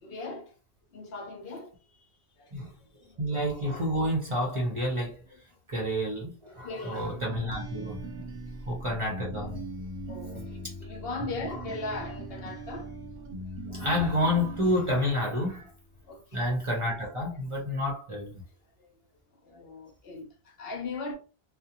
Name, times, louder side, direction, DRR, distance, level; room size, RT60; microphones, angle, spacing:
voice 1, 0.0-0.5 0.9-2.1 2.4-2.5 3.0-3.2 5.3-5.4 6.6-7.0 10.1-13.0 13.5-13.6 16.1-16.2 18.8-18.9 19.4-21.1, left 3 dB, 65° left, 0.9 m, -39 dB
voice 2, 3.2-5.2 5.7-8.0 8.7-9.6 10.6-10.7 11.5-11.6 13.7-15.7 16.3-18.4, left 1 dB, 35° right, 0.7 m, -29 dB
sound 1, 7.0-15.7, right 1 dB, 70° right, 0.7 m, -40 dB
2.5 x 2.0 x 2.8 m
omnidirectional pair, 1.1 m